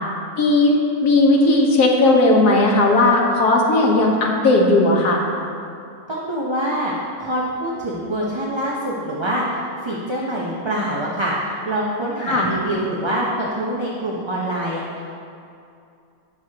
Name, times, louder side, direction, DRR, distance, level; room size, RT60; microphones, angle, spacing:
voice 1, 0.4-0.8 1.0-5.2 12.2-12.5, left 2 dB, 85° left, -2 dB, 1.8 m, -16 dB
voice 2, 6.1-6.9 7.2-14.8, right 1 dB, 25° right, -5 dB, 0.7 m, -25 dB
16.5 x 6.1 x 2.9 m, 2.5 s
omnidirectional pair, 1.6 m